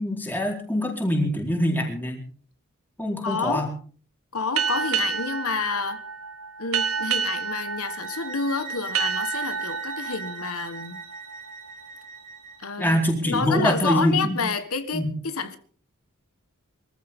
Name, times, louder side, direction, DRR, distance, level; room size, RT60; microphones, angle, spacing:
voice 1, 0.0-2.2 3.0-3.7 12.8-14.4 14.9-15.1, equal, 10° left, 4.2 m, -24 dB
voice 2, 3.2-3.7 4.3-6.0 6.6-11.0 12.6-13.0 13.2-15.6, left 4 dB, 90° left, 1.5 m, -29 dB
sound 1, 4.6-11.8, right 6 dB, 80° right, 2.1 m, -30 dB
sound 2, 7.8-12.7, right 5 dB, 35° right, 3.2 m, -40 dB
24.0 x 14.5 x 3.7 m
head